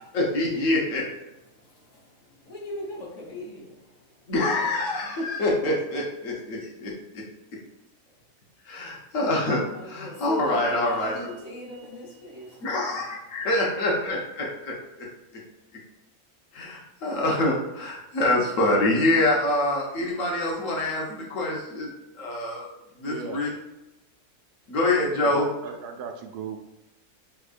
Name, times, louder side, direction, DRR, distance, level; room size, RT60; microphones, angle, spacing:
voice 1, 0.1-1.0 4.3-6.9 8.6-11.2 12.6-14.7 15.3-15.4 16.5-21.9 22.1-22.7 23.0-23.5 24.7-25.5, left 1 dB, 60° left, 1.2 m, -25 dB
voice 2, 1.5-4.2 9.7-13.1 13.4-13.5, left 1 dB, 25° left, 1.2 m, -40 dB
voice 3, 23.0-23.4 25.2-26.7, right 5 dB, 90° right, 1.1 m, -37 dB
4.8 x 3.5 x 2.4 m
omnidirectional pair, 1.6 m